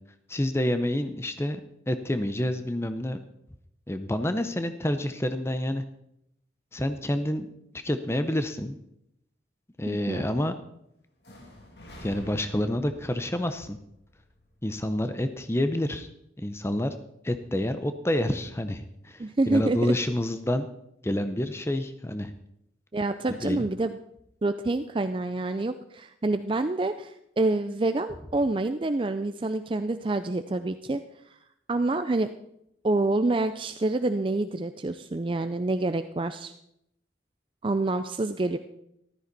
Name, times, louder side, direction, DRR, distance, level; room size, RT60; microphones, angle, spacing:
voice 1, 0.3-3.2 3.9-5.8 6.7-7.5 7.7-8.8 9.8-10.5 12.0-13.8 14.6-16.1 16.4-16.9 17.2-20.7 21.0-22.3 23.4-23.6, left 1 dB, 15° left, 10 dB, 0.6 m, -28 dB
voice 2, 9.9-10.2 19.2-19.9 22.9-24.0 24.4-31.0 31.7-32.3 32.8-36.5 37.6-38.6, right 2 dB, 30° right, 10 dB, 0.4 m, -27 dB
sound 1, 11.2-15.1, left 1 dB, 70° left, 2.7 m, -49 dB
14.5 x 13.0 x 4.1 m, 0.77 s
head